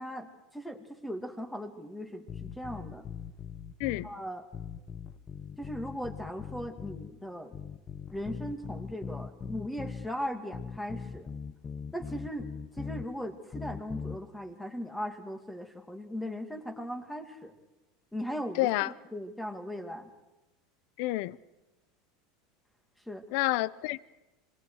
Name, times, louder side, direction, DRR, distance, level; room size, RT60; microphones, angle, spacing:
voice 1, 0.0-3.1 4.0-4.4 5.6-7.5 8.1-11.3 11.9-17.5 18.1-20.1 23.1-23.2, equal, 5° left, 2.3 m, -38 dB
sound 1, 2.3-4.1 4.5-7.1 7.5-10.1 10.5-13.1 13.5-14.2, left 6 dB, 25° left, 0.9 m, -40 dB
voice 2, 18.5-18.9 21.0-21.4 23.3-24.1, left 18 dB, 65° left, 0.7 m, -29 dB
26.5 x 21.5 x 4.8 m
supercardioid pair, 135°, 0 cm